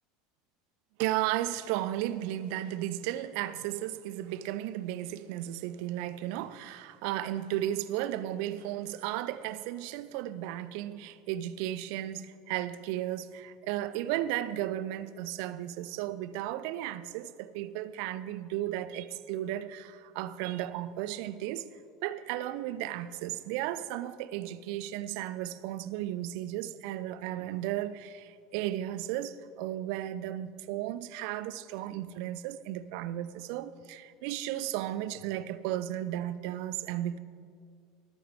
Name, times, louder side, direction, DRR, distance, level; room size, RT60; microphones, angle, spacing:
voice 1, 1.0-21.7 22.0-37.2, right 13 dB, 55° right, 0.5 m, -34 dB
20.0 x 9.3 x 3.6 m
figure-of-eight pair, 75°, 0 cm